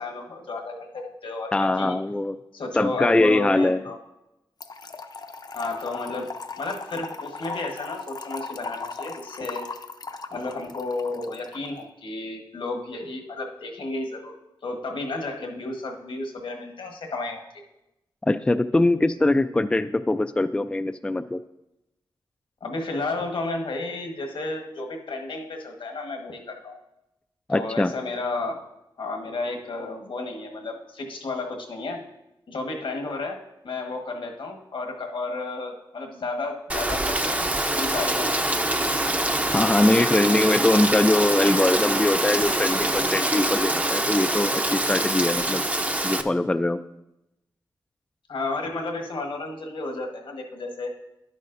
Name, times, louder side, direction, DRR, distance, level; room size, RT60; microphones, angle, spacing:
voice 1, 0.0-2.0 2.5-4.0 5.5-6.3 6.6-9.6 10.3-14.3 14.6-17.6 22.6-26.8 27.5-28.6 29.0-32.0 32.5-33.4 33.6-38.3 48.3-50.9, left 3 dB, 75° left, 3 dB, 1.3 m, -32 dB
voice 2, 1.5-2.4 2.7-3.8 18.2-21.4 27.5-27.9 39.5-45.6 46.0-46.8, left 2 dB, 10° left, 10 dB, 0.3 m, -22 dB
Trickle dribble / Fill (with liquid), 4.6-11.7, left 4 dB, 50° left, 0.6 m, -37 dB
Rain, 36.7-46.2, right 1 dB, 15° right, 0.6 m, -24 dB
10.5 x 9.1 x 2.6 m, 0.91 s
cardioid pair, 55°, 9 cm